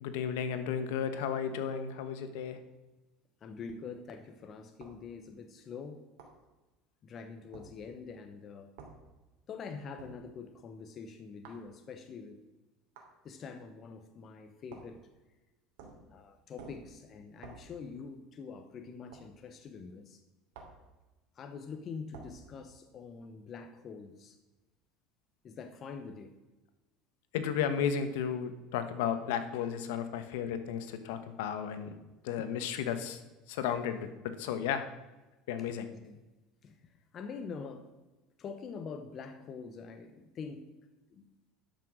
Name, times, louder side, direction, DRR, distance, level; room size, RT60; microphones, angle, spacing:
voice 1, 0.0-2.6 27.3-31.9 32.2-33.2 33.5-34.9 35.5-35.9, left 8 dB, 85° left, 10 dB, 1.2 m, -33 dB
voice 2, 3.4-6.0 7.0-8.7 9.5-12.4 13.2-15.0 16.1-20.2 21.4-24.4 25.4-26.3 35.8-36.2 36.6-37.9 38.4-40.6 41.1-41.3, left 5 dB, 35° left, 6 dB, 0.9 m, -45 dB
sound 1, 4.8-5.0 6.2-6.4 7.5-7.7 8.8-9.0 10.0-10.2 11.4-11.7 12.9-13.1 14.7-15.0 15.8-16.1 16.6-16.9 17.4-17.7 19.1-19.3 20.5-20.8 22.1-22.4, right 4 dB, 80° right, 2.9 m, -50 dB
12.0 x 6.1 x 6.2 m, 1.1 s
cardioid pair, 145°, 0 cm